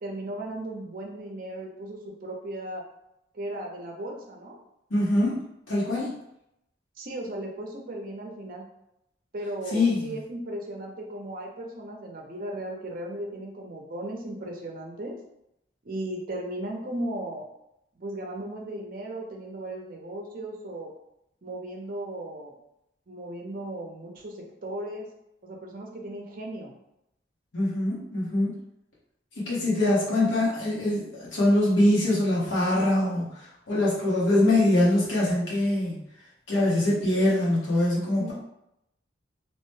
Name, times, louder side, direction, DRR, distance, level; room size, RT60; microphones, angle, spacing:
voice 1, 0.0-2.8 3.3-4.6 7.0-8.7 9.3-15.1 15.8-17.4 18.0-20.9 21.4-22.5 23.1-25.1 25.4-26.7 38.2-38.3, right 1 dB, 50° right, 0 dB, 0.5 m, -36 dB
voice 2, 4.9-6.1 9.7-10.1 27.5-28.6 29.4-36.0 36.5-38.3, left 1 dB, 90° left, -6 dB, 1.2 m, -23 dB
2.9 x 2.1 x 3.1 m, 0.82 s
head